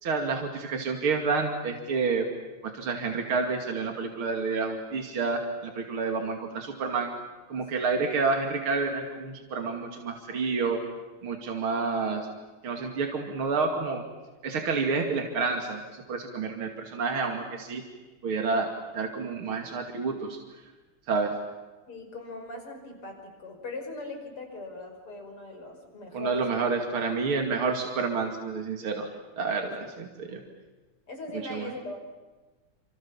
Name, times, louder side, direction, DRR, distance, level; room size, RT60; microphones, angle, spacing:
voice 1, 0.0-2.3 2.6-7.1 7.5-10.9 11.2-12.3 12.6-14.0 14.4-17.8 18.2-20.4 21.1-21.4 26.1-29.1 29.4-30.4 31.5-31.7, right 4 dB, 70° right, 3 dB, 3.3 m, -29 dB
voice 2, 7.6-7.9 21.9-26.4 29.0-29.1 29.4-29.7 30.1-30.4 31.1-32.0, left 2 dB, 80° left, 3 dB, 6.6 m, -41 dB
29.0 x 27.5 x 7.3 m, 1.2 s
omnidirectional pair, 2.4 m